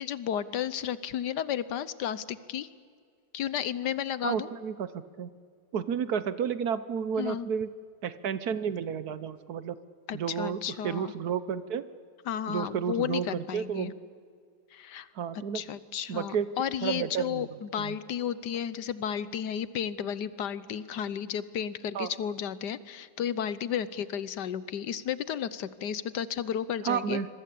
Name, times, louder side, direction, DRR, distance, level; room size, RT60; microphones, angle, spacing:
voice 1, 0.0-2.7 3.3-4.5 7.2-7.5 10.1-11.1 12.3-13.9 14.7-15.1 15.5-27.2, left 9 dB, 70° left, 15 dB, 1.4 m, -33 dB
voice 2, 4.2-5.3 5.7-7.7 8.0-9.7 10.1-11.9 12.5-13.9 15.1-15.6 16.1-16.5 16.8-17.5 17.8-18.0 21.9-22.1 26.9-27.3, right 7 dB, 65° right, 14 dB, 1.3 m, -31 dB
26.5 x 22.5 x 8.5 m, 2.1 s
omnidirectional pair, 1.9 m